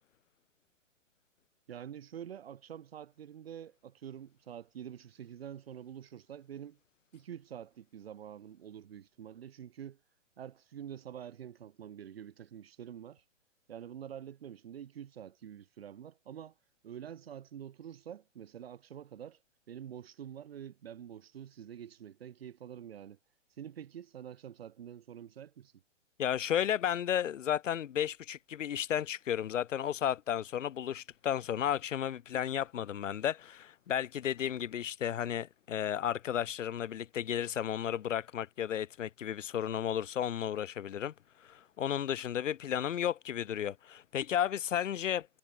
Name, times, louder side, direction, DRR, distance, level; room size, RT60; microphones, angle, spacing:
voice 1, 1.7-6.8 7.1-10.0 10.4-13.2 13.7-16.5 16.8-19.4 19.7-23.2 23.6-25.7, right 9 dB, 50° right, 3.4 m, -47 dB
voice 2, 26.2-41.1 41.4-45.3, left 10 dB, 80° left, 1.0 m, -33 dB
hypercardioid pair, 175°, 37 cm